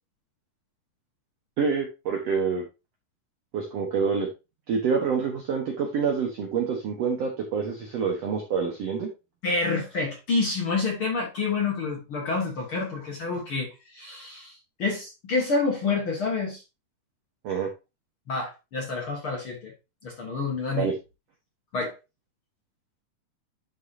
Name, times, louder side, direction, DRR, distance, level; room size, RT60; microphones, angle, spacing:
voice 1, 1.6-2.6 3.5-4.3 4.7-9.1 17.4-17.7 20.8-20.9, right 5 dB, 60° right, 1 dB, 2.0 m, -27 dB
voice 2, 9.4-16.6 18.3-19.7 20.0-20.9 21.7-22.0, left 3 dB, 45° left, -1 dB, 2.3 m, -28 dB
11.5 x 4.7 x 2.7 m, 0.26 s
omnidirectional pair, 3.9 m